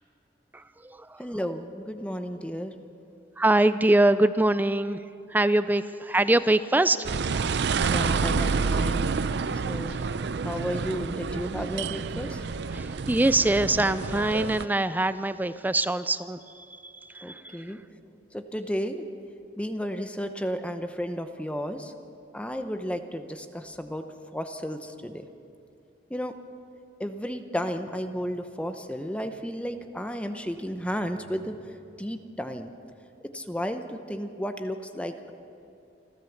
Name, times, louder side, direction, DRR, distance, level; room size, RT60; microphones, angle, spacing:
voice 1, 0.5-1.2 3.4-5.0 5.3-7.1 9.4-9.5 9.8-10.1 12.7-17.8, right 2 dB, 10° right, 13 dB, 0.4 m, -24 dB
voice 2, 1.2-2.7 7.9-9.1 9.5-10.0 10.4-12.4 17.2-17.8 18.3-19.1 19.6-21.9 22.3-24.1 24.3-25.3 26.1-26.4 27.0-31.6 32.0-32.7 33.2-35.3, equal, 5° left, 7 dB, 0.8 m, -33 dB
sound 1, 7.0-14.7, right 5 dB, 65° right, 0.5 m, -28 dB
28.5 x 13.0 x 7.2 m, 2.5 s
head